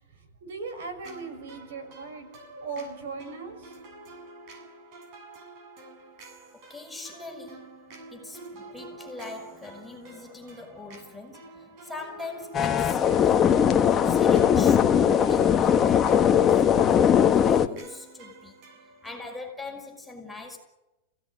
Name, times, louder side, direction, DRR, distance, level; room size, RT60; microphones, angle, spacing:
voice 1, 0.4-3.8, right 4 dB, 75° right, 6.7 m, -38 dB
sound 1, 1.0-19.4, right 2 dB, 45° right, 7.6 m, -48 dB
voice 2, 6.5-20.6, left 3 dB, 5° left, 5.6 m, -41 dB
sound 2, 12.5-17.7, left 8 dB, 20° left, 1.5 m, -20 dB
29.5 x 17.5 x 9.6 m
supercardioid pair, 150°, 0 cm